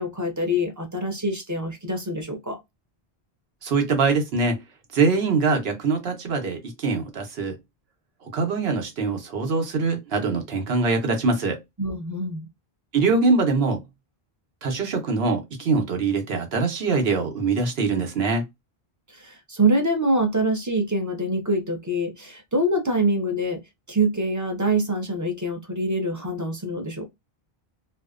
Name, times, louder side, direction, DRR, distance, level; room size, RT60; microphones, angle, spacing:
voice 1, 0.0-2.6 11.8-12.5 19.1-23.6 23.9-27.0, right 1 dB, 20° right, 0.5 m, -25 dB
voice 2, 3.6-4.6 4.9-7.6 8.2-11.6 12.9-13.8 14.6-18.4, right 4 dB, 75° right, 1.0 m, -23 dB
2.5 x 2.1 x 2.3 m
omnidirectional pair, 1.0 m